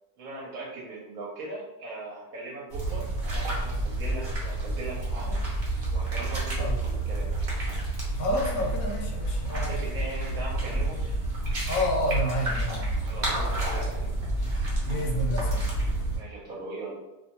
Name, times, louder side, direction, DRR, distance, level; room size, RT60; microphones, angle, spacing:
voice 1, 0.2-5.4 5.9-7.3 9.5-11.0 13.0-14.1 16.1-16.9, right 2 dB, 70° right, -4 dB, 1.0 m, -39 dB
sound 1, 2.7-16.2, right 2 dB, 45° right, 0.6 m, -29 dB
voice 2, 8.2-9.8 11.7-12.9 14.9-15.7, left 1 dB, 75° left, 0 dB, 1.0 m, -29 dB
2.6 x 2.2 x 2.8 m, 1.0 s
omnidirectional pair, 1.7 m